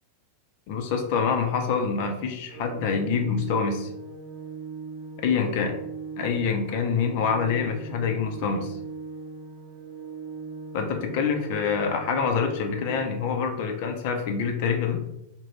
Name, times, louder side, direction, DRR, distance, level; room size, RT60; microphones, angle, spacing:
voice 1, 0.7-3.9 5.2-5.7 6.2-8.8 10.7-15.0, left 6 dB, 45° left, 4 dB, 0.5 m, -26 dB
Organ, 2.5-13.5, right 5 dB, 30° right, 0.7 m, -39 dB
2.4 x 2.1 x 3.1 m, 0.83 s
figure-of-eight pair, 90°, 0 cm